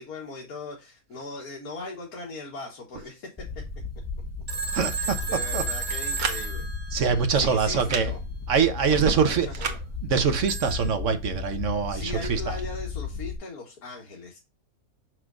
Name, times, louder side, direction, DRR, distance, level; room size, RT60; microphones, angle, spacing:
voice 1, 0.0-3.6 5.0-6.7 7.3-8.2 9.0-9.8 11.9-14.4, left 3 dB, 90° left, 2.0 m, -39 dB
sound 1, 3.4-13.4, left 4 dB, 10° left, 0.9 m, -35 dB
Telephone, 4.5-7.5 10.5-10.9, right 4 dB, 30° right, 1.1 m, -33 dB
voice 2, 4.7-5.6 6.9-8.1 8.5-9.5 10.1-12.6, right 6 dB, 60° right, 1.3 m, -24 dB
sound 2, 5.9-6.4 7.8-8.1 9.5-9.8, right 6 dB, 90° right, 1.5 m, -31 dB
6.5 x 6.0 x 2.5 m
omnidirectional pair, 1.5 m